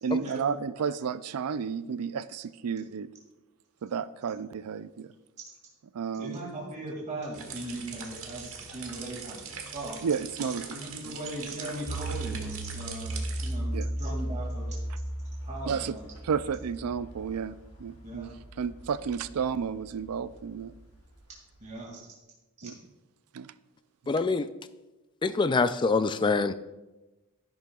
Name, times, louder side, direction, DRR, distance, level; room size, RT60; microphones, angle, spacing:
voice 1, 0.0-3.1 3.8-5.1 5.9-6.4 10.0-10.7 11.0-11.1 13.7-13.9 15.7-16.0 16.2-17.5 17.8-20.7 22.6-22.7 23.3-23.5 24.1-24.2, right 6 dB, 85° right, 15 dB, 0.4 m, -32 dB
voice 2, 6.1-9.4 9.7-10.0 10.5-14.7 15.4-16.1 18.0-18.3 21.6-22.0 22.6-22.7, right 1 dB, 35° right, -3 dB, 2.2 m, -39 dB
sound 1, 7.3-13.5, right 6 dB, 65° right, 1.3 m, -42 dB
sound 2, 11.8-21.2 21.6-21.7, right 1 dB, 75° left, 1.7 m, -37 dB
voice 3, 24.1-24.5 25.2-26.5, left 4 dB, 20° left, 12 dB, 0.3 m, -25 dB
12.0 x 11.0 x 2.3 m, 1.1 s
head